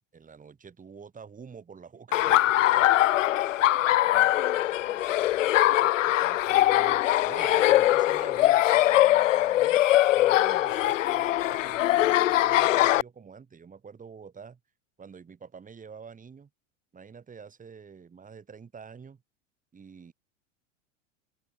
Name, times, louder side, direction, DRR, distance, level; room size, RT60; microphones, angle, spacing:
voice 1, 0.1-2.4 3.8-4.4 5.6-9.9 10.1-14.6 15.0-16.5 16.9-19.2 19.7-20.1, right 6 dB, 20° right, 7.9 m, -47 dB
Laughter, 2.1-13.0, left 14 dB, 80° left, 0.6 m, -22 dB
voice 2, 2.7-3.3 3.7-5.8 6.2-6.8, right 15 dB, 40° right, 5.2 m, -54 dB
hypercardioid pair, 90°, 37 cm